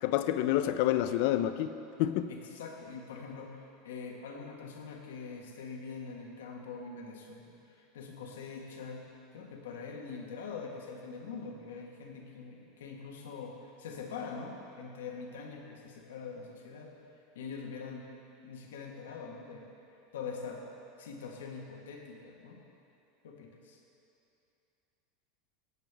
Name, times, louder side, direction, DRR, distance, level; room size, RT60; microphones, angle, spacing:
voice 1, 0.0-2.3, left 12 dB, 65° left, 10 dB, 0.6 m, -28 dB
voice 2, 2.3-9.1 9.3-16.9 17.3-18.1 18.4-19.7 20.1-22.6 23.2-23.8, left 5 dB, 85° left, 0 dB, 1.5 m, -44 dB
19.0 x 8.3 x 3.5 m, 2.7 s
supercardioid pair, 110°, 0 cm